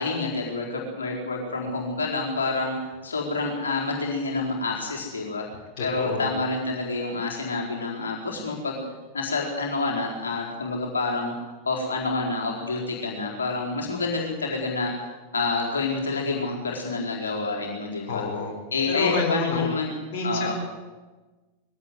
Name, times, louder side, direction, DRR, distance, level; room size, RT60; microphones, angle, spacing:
voice 1, 0.0-5.4 5.8-8.8 9.1-11.3 11.6-15.1 15.3-18.2 18.7-19.9 20.2-20.5, left 3 dB, 70° left, -1 dB, 4.3 m, -28 dB
voice 2, 5.8-6.3 18.1-18.5 18.9-19.7 20.1-20.5, left 3 dB, 50° left, 0 dB, 4.4 m, -28 dB
21.5 x 16.5 x 8.1 m, 1.3 s
figure-of-eight pair, 90°, 0 cm